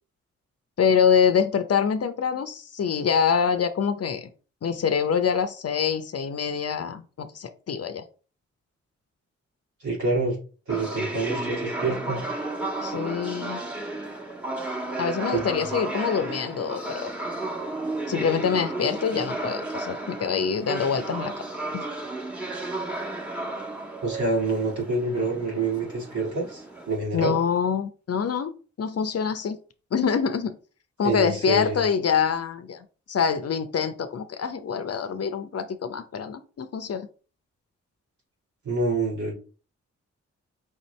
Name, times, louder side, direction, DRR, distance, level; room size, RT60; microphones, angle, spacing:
voice 1, 0.8-4.3 4.6-8.0 12.8-13.6 15.0-17.1 18.1-21.3 21.7-21.9 27.1-29.6 29.9-30.6 31.0-32.8 33.1-37.1, left 7 dB, 55° left, 9 dB, 0.7 m, -25 dB
voice 2, 9.8-10.4 10.7-12.2 15.3-15.5 24.0-27.4 31.0-31.9 38.6-39.3, right 3 dB, 70° right, -2 dB, 1.9 m, -27 dB
sound 1, 10.7-27.0, right 2 dB, 5° right, 1.3 m, -33 dB
4.8 x 2.7 x 3.1 m, 0.37 s
supercardioid pair, 45°, 30 cm